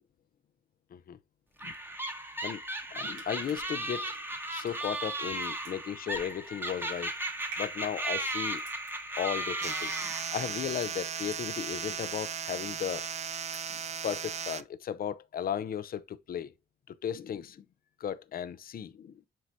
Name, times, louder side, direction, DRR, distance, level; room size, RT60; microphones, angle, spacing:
sound 1, 1.6-10.7, right 1 dB, 10° right, 1.2 m, -36 dB
voice 1, 2.9-4.1 4.5-7.1 7.6-8.6 9.2-13.1 13.7-16.5 16.9-17.6 18.0-19.2, left 9 dB, 50° left, 0.6 m, -36 dB
sound 2, 3.1-11.9 12.2-12.9 13.2-13.9 14.3-14.4, right 4 dB, 85° right, 2.9 m, -52 dB
sound 3, 9.6-14.6, right 7 dB, 35° right, 0.5 m, -36 dB
7.6 x 4.8 x 2.7 m
cardioid pair, 90°, 20 cm